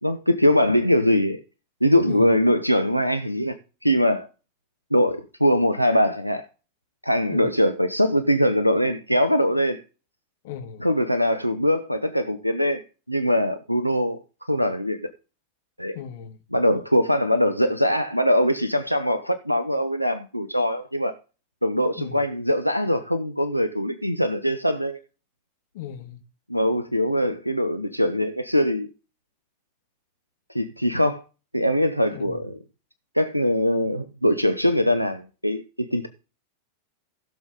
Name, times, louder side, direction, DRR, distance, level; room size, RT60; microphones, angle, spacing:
voice 1, 0.0-1.4 1.8-3.5 3.8-4.3 4.9-6.5 7.0-9.8 10.8-12.8 13.1-14.2 14.5-15.1 15.8-16.0 16.5-21.2 21.6-25.0 26.5-28.9 30.5-31.2 31.5-32.6 33.1-36.1, equal, 90° left, 0.8 m, -22 dB
voice 2, 10.4-10.8 15.9-16.4 22.0-22.2 25.7-26.2 32.1-32.4, left 9 dB, 55° left, 1.8 m, -36 dB
15.5 x 7.0 x 3.8 m
figure-of-eight pair, 90°, 0 cm